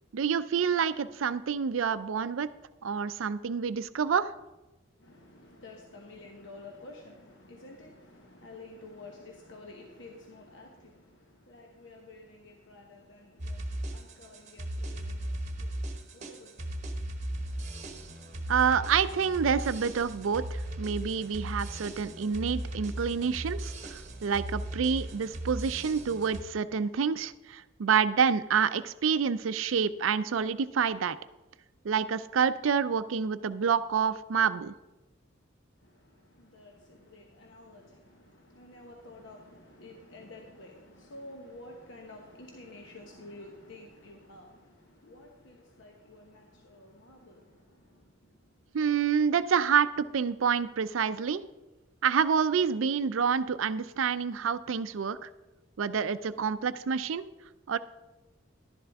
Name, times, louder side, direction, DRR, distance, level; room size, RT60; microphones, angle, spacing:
voice 1, 0.1-2.5 2.8-4.3 18.5-31.2 31.8-34.7 48.7-51.4 52.0-55.3 55.8-57.3 57.7-57.8, right 6 dB, 85° right, 0.4 m, -28 dB
voice 2, 5.0-18.5 35.8-48.3, left 2 dB, 65° left, 1.1 m, -51 dB
sound 1, 13.4-26.4, right 1 dB, 40° right, 1.0 m, -37 dB
11.5 x 11.0 x 3.5 m
head